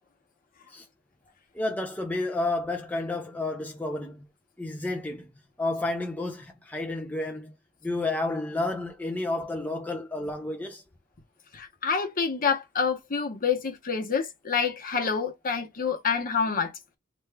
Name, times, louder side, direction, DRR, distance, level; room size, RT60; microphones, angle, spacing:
voice 1, 1.5-4.2 4.6-5.3 5.6-7.5 7.8-10.8, left 2 dB, 10° left, 0.4 m, -31 dB
voice 2, 11.5-16.7, left 5 dB, 40° left, 0.9 m, -27 dB
3.3 x 3.1 x 2.2 m
head